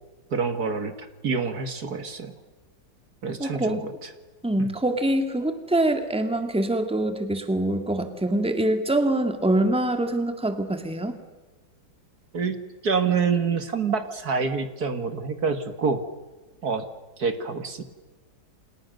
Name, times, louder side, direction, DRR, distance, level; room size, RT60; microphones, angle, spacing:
voice 1, 0.3-2.3 3.2-4.1 4.6-4.7 12.3-16.0 16.6-16.9 17.2-17.8, right 5 dB, 55° right, 8 dB, 2.2 m, -27 dB
voice 2, 3.4-3.9 4.4-11.2, right 1 dB, 5° right, 6 dB, 2.1 m, -24 dB
29.5 x 27.5 x 6.6 m, 1.3 s
omnidirectional pair, 2.0 m